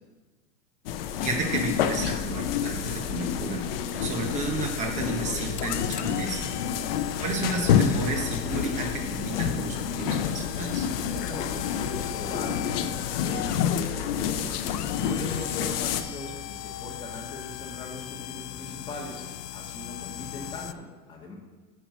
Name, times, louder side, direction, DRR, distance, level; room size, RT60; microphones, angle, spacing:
sound 1, 0.9-16.0, left 8 dB, 40° left, 0.5 m, -29 dB
voice 1, 1.2-3.7 4.0-6.5 7.2-10.9 16.3-16.4, right 3 dB, 15° right, 3 dB, 0.9 m, -32 dB
sound 2, 3.0-13.6, right 5 dB, 45° right, 1.0 m, -47 dB
sound 3, 4.8-20.7, left 13 dB, 85° left, 0.6 m, -38 dB
voice 2, 11.2-14.6 15.0-19.2 19.5-21.3, left 2 dB, 10° left, -3 dB, 1.5 m, -40 dB
6.7 x 6.0 x 7.2 m, 1.3 s
supercardioid pair, 155°, 47 cm